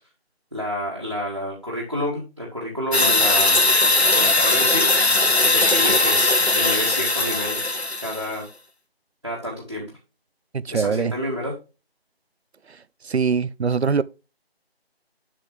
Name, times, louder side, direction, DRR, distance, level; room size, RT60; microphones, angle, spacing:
voice 1, 0.5-3.6 4.1-4.9 5.5-7.6 8.0-8.4 9.2-9.9 10.7-11.5, equal, 30° right, 1.7 m, -29 dB
sound 1, 2.9-8.3, left 2 dB, 85° left, 1.4 m, -19 dB
voice 2, 10.5-11.1 13.0-14.0, right 5 dB, 85° right, 0.6 m, -22 dB
7.3 x 6.5 x 3.3 m
figure-of-eight pair, 180°, 31 cm